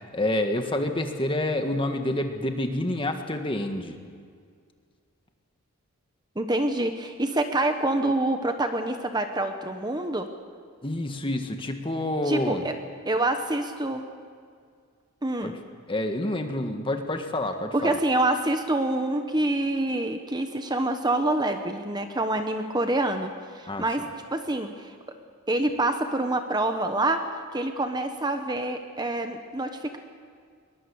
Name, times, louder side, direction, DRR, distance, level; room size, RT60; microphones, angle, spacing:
voice 1, 0.1-4.0 10.8-12.6 15.4-15.5 15.9-18.0 23.7-23.8, left 1 dB, 25° left, 5 dB, 1.6 m, -28 dB
voice 2, 6.4-10.3 12.3-12.7 13.1-14.0 15.2-15.5 17.7-24.9 25.5-27.2 27.5-30.0, right 2 dB, 20° right, 6 dB, 1.1 m, -26 dB
22.0 x 21.5 x 7.1 m, 2.1 s
head